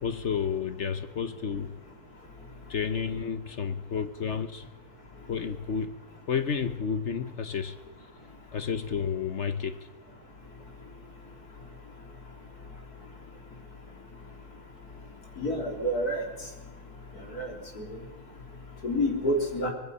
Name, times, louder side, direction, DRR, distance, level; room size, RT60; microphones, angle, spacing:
voice 1, 0.0-1.8 2.7-4.6 5.3-6.0 6.3-7.8 8.5-9.8, left 6 dB, 55° left, 1.2 m, -31 dB
voice 2, 15.4-16.2 17.3-17.5 17.8-17.9 18.8-19.7, equal, 75° left, 4.0 m, -28 dB
24.5 x 20.5 x 5.5 m
omnidirectional pair, 1.6 m